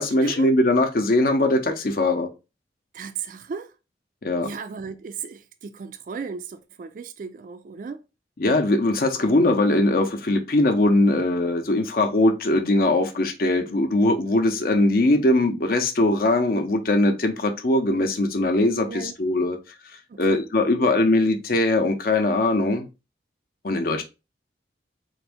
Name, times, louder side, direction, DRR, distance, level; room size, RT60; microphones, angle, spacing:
voice 1, 0.0-2.3 4.2-4.5 8.4-19.6 20.2-22.9 23.6-24.0, left 2 dB, 50° left, 0.6 m, -21 dB
voice 2, 2.9-3.7 4.4-8.0 18.8-19.1 20.1-20.4 20.7-20.9, right 5 dB, 50° right, 0.3 m, -36 dB
3.9 x 2.6 x 3.4 m
head